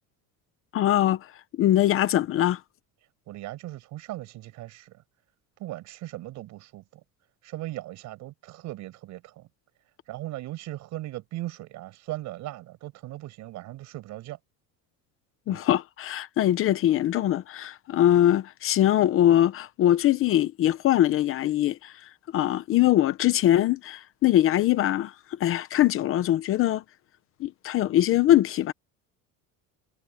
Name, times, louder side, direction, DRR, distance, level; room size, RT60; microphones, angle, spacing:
voice 1, 0.7-1.3 1.6-2.6 15.5-26.8 27.4-28.7, left 12 dB, 35° left, 0.8 m, -22 dB
voice 2, 3.3-5.0 5.6-7.0 7.4-9.5 10.1-14.4 15.5-15.6, right 16 dB, 50° right, 5.5 m, -38 dB
cardioid pair, 175°, 36 cm